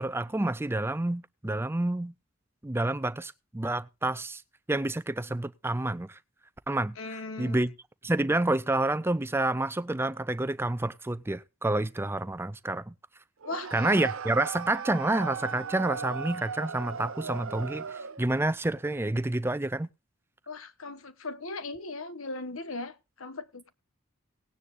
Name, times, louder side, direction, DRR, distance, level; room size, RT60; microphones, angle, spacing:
voice 1, 0.0-2.1 2.6-4.4 4.7-6.2 6.7-6.9 7.4-7.7 8.0-12.9 13.7-19.9, right 2 dB, 10° right, 0.5 m, -29 dB
voice 2, 7.0-7.6 13.4-13.7 20.5-23.7, left 2 dB, 75° left, 1.3 m, -38 dB
sound 1, 13.4-18.3, right 6 dB, 75° right, 0.7 m, -37 dB
18.5 x 9.8 x 2.5 m
head